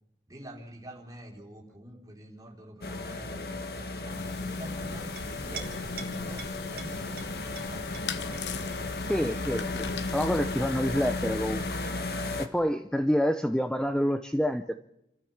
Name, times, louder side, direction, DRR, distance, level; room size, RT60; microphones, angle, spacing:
voice 1, 0.3-8.5, right 1 dB, 20° right, 0 dB, 3.9 m, -47 dB
sound 1, 2.8-12.5, left 2 dB, 60° left, 1.7 m, -34 dB
sound 2, 4.1-11.9, left 5 dB, 85° left, 1.1 m, -41 dB
Chink clink, 4.9-12.0, right 4 dB, 60° right, 2.5 m, -48 dB
voice 2, 9.0-11.7 12.4-14.7, equal, 5° left, 8 dB, 0.7 m, -28 dB
28.0 x 13.5 x 7.3 m, 0.83 s
head